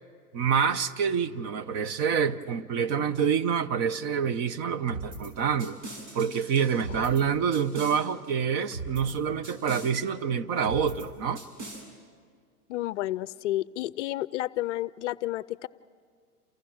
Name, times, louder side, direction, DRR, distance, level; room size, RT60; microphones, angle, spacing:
voice 1, 0.3-5.8 6.1-11.4, right 7 dB, 35° right, 13 dB, 0.8 m, -27 dB
sound 1, 4.9-5.3 5.6-7.2 7.5-8.0 8.7-9.1 9.4-9.9 10.6-11.1 11.4-11.8, right 2 dB, 60° right, 6.8 m, -39 dB
voice 2, 12.7-15.7, left 15 dB, 50° left, 18 dB, 0.6 m, -31 dB
29.0 x 27.5 x 6.4 m, 2.1 s
hypercardioid pair, 125°, 46 cm